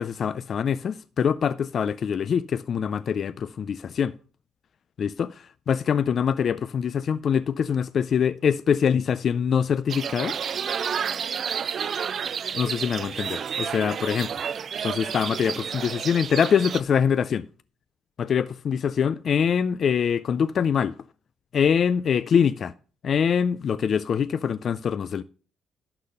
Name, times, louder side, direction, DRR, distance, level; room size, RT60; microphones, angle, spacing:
voice 1, 0.0-4.1 5.0-10.4 12.5-14.3 14.8-17.5 18.2-20.9 21.5-22.7 23.0-25.2, left 7 dB, 55° left, 0.3 m, -24 dB
sound 1, 9.9-16.8, right 7 dB, 55° right, 0.3 m, -30 dB
11.5 x 4.1 x 6.5 m
cardioid pair, 90°, 0 cm